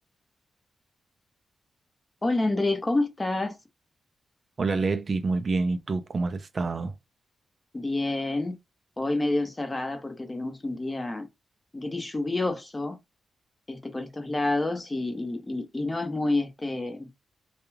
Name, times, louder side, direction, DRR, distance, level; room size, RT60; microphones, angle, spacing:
voice 1, 2.2-3.6 7.7-8.6 9.0-11.3 11.7-13.0 13.7-17.1, left 2 dB, 25° left, 0.6 m, -28 dB
voice 2, 4.6-6.9, right 3 dB, 45° right, 0.3 m, -27 dB
2.2 x 2.2 x 3.1 m
cardioid pair, 80°, 0 cm